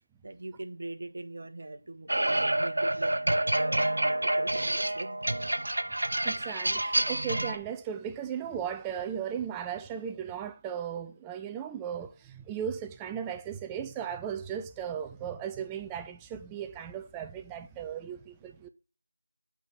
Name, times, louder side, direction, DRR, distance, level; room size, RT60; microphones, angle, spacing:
voice 1, 0.2-5.2, right 2 dB, 45° right, 1.2 m, -42 dB
sound 1, 2.1-7.6, right 1 dB, 70° right, 0.9 m, -28 dB
voice 2, 6.2-18.7, right 8 dB, 5° right, 0.3 m, -36 dB
8.9 x 3.6 x 5.9 m
figure-of-eight pair, 175°, 0 cm